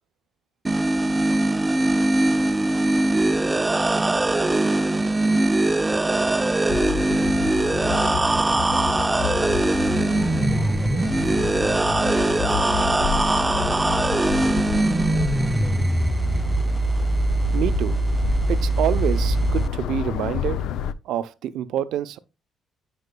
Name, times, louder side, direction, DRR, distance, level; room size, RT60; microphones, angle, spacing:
sound 1, 0.7-19.7, right 2 dB, 20° right, 0.4 m, -21 dB
sound 2, 6.7-20.9, left 9 dB, 80° left, 0.4 m, -30 dB
voice 1, 10.1-16.0, left 1 dB, 45° left, 3.9 m, -44 dB
voice 2, 17.5-18.0 18.5-20.6 21.1-22.2, right 11 dB, 85° right, 0.5 m, -27 dB
9.7 x 5.0 x 2.2 m
cardioid pair, 90°, 0 cm